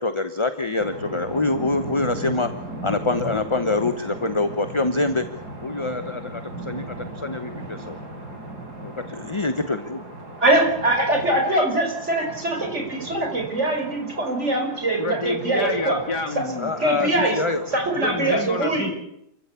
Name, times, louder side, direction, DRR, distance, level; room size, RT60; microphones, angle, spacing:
voice 1, 0.0-2.5 2.8-5.3 5.6-8.0 8.8-10.0 16.6-17.6, left 3 dB, 20° left, 9 dB, 1.0 m, -25 dB
sound 1, 0.8-18.4, right 1 dB, 80° right, 5.1 m, -37 dB
voice 2, 10.4-16.0 16.8-17.4 17.7-18.9, right 2 dB, 45° right, 3 dB, 5.5 m, -22 dB
voice 3, 15.0-17.1 18.0-18.9, left 3 dB, 90° left, 4 dB, 3.8 m, -29 dB
28.0 x 15.5 x 8.4 m, 0.79 s
omnidirectional pair, 1.7 m